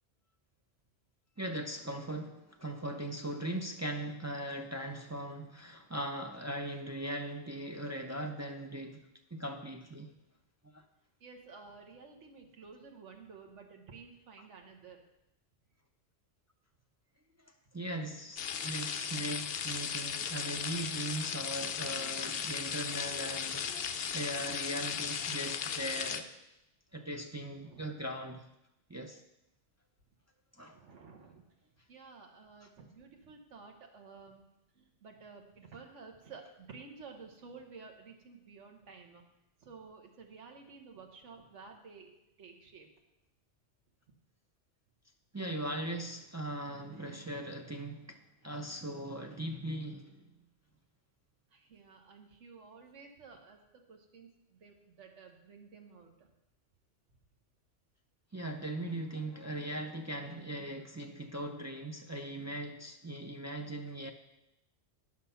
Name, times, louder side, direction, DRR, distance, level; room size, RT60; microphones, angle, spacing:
voice 1, 1.4-10.1 10.7-10.8 17.7-26.3 26.9-28.5 28.9-29.2 30.6-30.8 45.3-50.4 58.3-64.1, right 1 dB, 25° right, 0.3 m, -39 dB
voice 2, 11.2-15.0 27.6-27.9 30.7-31.4 31.9-34.4 34.7-39.2 39.6-42.9 51.5-56.3, right 4 dB, 80° right, 1.5 m, -53 dB
sound 1, 18.4-26.2, left 7 dB, 60° left, 0.8 m, -36 dB
9.9 x 6.0 x 5.7 m
omnidirectional pair, 1.2 m